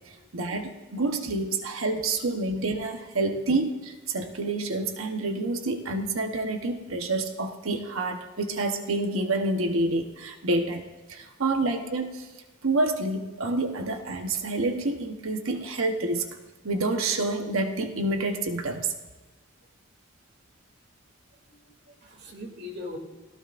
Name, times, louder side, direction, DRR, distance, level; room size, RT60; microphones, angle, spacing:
voice 1, 0.1-10.8 11.1-12.3 12.6-16.2 16.6-18.9, right 2 dB, 85° right, 5 dB, 1.1 m, -28 dB
voice 2, 21.5-23.0, left 2 dB, 55° right, 1 dB, 2.8 m, -41 dB
30.0 x 18.0 x 2.6 m, 1.3 s
head